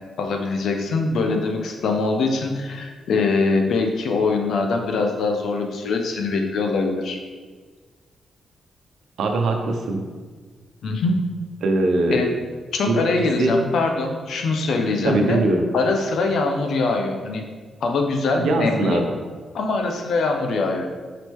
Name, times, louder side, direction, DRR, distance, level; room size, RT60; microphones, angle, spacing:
voice 1, 0.2-7.2 10.8-11.2 12.1-12.3 12.7-15.4 15.7-17.4 17.8-19.0 19.5-20.9, left 3 dB, 75° left, 3 dB, 0.8 m, -23 dB
voice 2, 9.2-10.0 11.6-12.2 12.9-13.0 13.4-13.5 15.0-15.6 18.4-19.1, right 2 dB, 80° right, 3 dB, 0.9 m, -21 dB
6.1 x 4.9 x 3.7 m, 1.5 s
cardioid pair, 120°, 0 cm